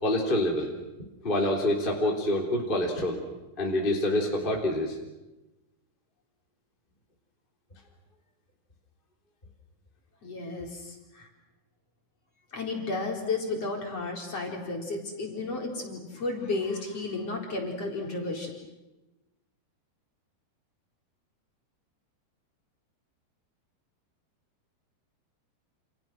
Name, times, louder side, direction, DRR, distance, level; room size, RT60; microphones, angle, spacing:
voice 1, 0.0-0.7 1.2-3.2 3.6-5.0, left 1 dB, 15° left, -1 dB, 3.1 m, -26 dB
voice 2, 10.2-11.3 12.5-18.5, left 3 dB, 35° left, 0 dB, 4.9 m, -33 dB
29.5 x 29.0 x 6.2 m, 1.0 s
omnidirectional pair, 4.9 m